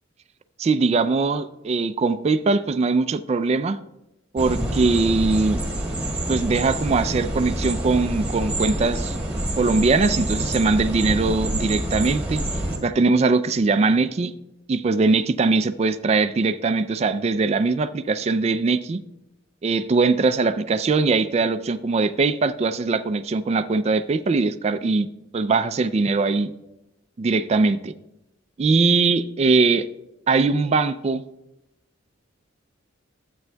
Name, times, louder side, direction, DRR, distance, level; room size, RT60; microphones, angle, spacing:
voice 1, 0.6-3.8 4.3-5.6 6.3-9.2 9.6-12.4 12.8-14.3 14.7-19.0 19.6-25.1 25.3-26.5 27.2-27.9 28.6-29.8 30.3-31.2, right 3 dB, 30° right, 9 dB, 0.3 m, -21 dB
sound 1, 4.4-12.8, right 1 dB, 5° right, 1.5 m, -27 dB
12.0 x 7.8 x 2.2 m, 0.91 s
head